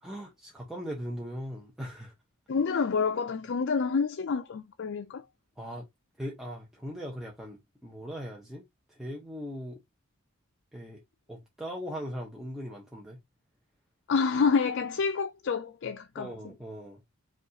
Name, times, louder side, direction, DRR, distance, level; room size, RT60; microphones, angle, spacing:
voice 1, 0.0-2.1 5.6-5.9 6.2-9.8 10.7-11.0 11.3-13.2 16.2-17.0, equal, ahead, 0.6 m, -39 dB
voice 2, 2.5-5.2 14.1-16.3, left 5 dB, 55° left, 0.4 m, -28 dB
5.2 x 2.4 x 3.8 m
head